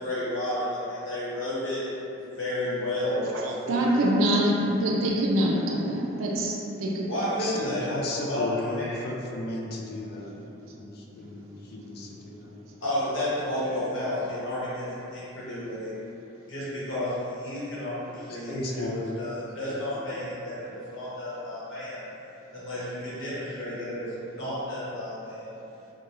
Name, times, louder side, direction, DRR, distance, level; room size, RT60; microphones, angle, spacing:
voice 1, 0.0-1.9 2.2-3.8 7.1-9.0 12.8-15.9 16.5-22.0 22.5-25.5, left 1 dB, 80° left, -10 dB, 1.0 m, -31 dB
voice 2, 3.2-7.6 10.4-10.5 11.7-11.8 13.5-13.6, right 1 dB, 85° right, -1 dB, 0.4 m, -26 dB
voice 3, 7.4-10.3 10.7-12.6 18.5-19.0, left 2 dB, 50° left, -1 dB, 0.3 m, -35 dB
2.4 x 2.2 x 2.9 m, 2.7 s
head